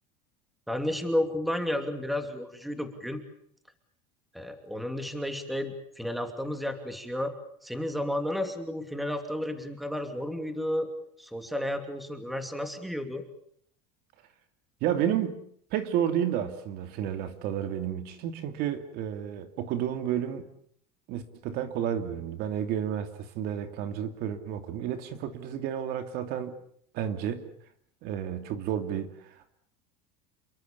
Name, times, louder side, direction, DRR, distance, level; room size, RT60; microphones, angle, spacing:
voice 1, 0.7-3.2 4.3-7.3 7.6-10.9 11.2-13.2, left 1 dB, ahead, 7 dB, 2.8 m, -32 dB
voice 2, 14.8-15.4 15.7-20.5 21.1-26.5 26.9-27.4 28.0-29.5, right 10 dB, 50° right, 9 dB, 2.8 m, -31 dB
28.5 x 23.5 x 7.0 m, 0.64 s
cardioid pair, 160°, 20 cm